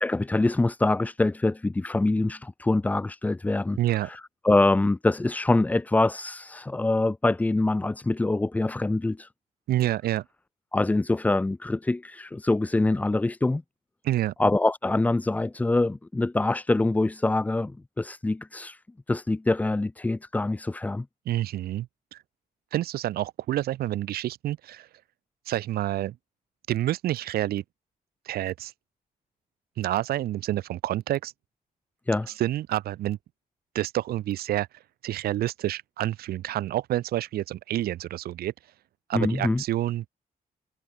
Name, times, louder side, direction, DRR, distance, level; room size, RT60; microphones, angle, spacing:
voice 1, 0.0-9.3 10.7-13.6 14.4-18.8 19.1-21.1 32.1-32.3 39.1-39.6, left 2 dB, 10° left, 0.4 m, -25 dB
voice 2, 3.8-4.1 9.7-10.2 14.0-14.3 21.3-22.2 22.7-24.9 25.5-26.2 26.7-27.6 28.3-28.7 29.8-31.3 32.4-33.2 33.7-34.7 35.0-38.5 39.1-40.1, right 13 dB, 90° right, 0.7 m, -28 dB
cardioid pair, 120°, 15 cm